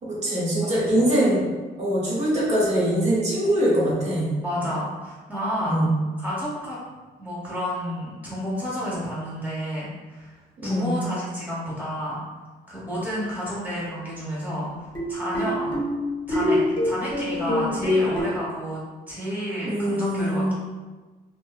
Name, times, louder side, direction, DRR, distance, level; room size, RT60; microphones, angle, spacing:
voice 1, 0.0-1.4 1.8-4.3 5.7-5.9 10.6-11.0 17.7-17.9 19.6-20.5, equal, 40° right, -6 dB, 1.2 m, -23 dB
voice 2, 4.4-5.8 6.2-6.8 7.2-12.2 12.7-15.8 16.3-18.8 19.1-20.5, equal, 10° right, -8 dB, 1.1 m, -30 dB
sound 1, 14.6-18.2, left 1 dB, 30° left, 1.0 m, -25 dB
3.0 x 2.0 x 2.4 m, 1.3 s
cardioid pair, 110°, 17 cm